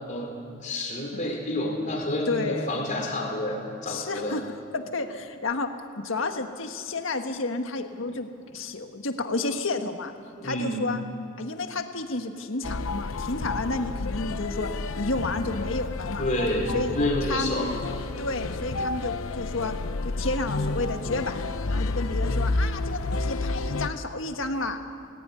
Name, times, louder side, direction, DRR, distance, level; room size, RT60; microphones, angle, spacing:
voice 1, 0.6-4.4 10.4-10.8 16.2-17.7, left 1 dB, 35° left, 0 dB, 4.3 m, -29 dB
voice 2, 2.3-2.7 3.9-10.1 10.4-11.0 11.4-16.2 16.7-17.0 17.3-17.8 18.2-19.8 20.0-24.8, left 2 dB, 70° left, 6 dB, 1.6 m, -31 dB
sound 1, 12.6-23.9, left 2 dB, 85° left, 0.8 m, -30 dB
18.5 x 15.5 x 9.7 m, 2.8 s
head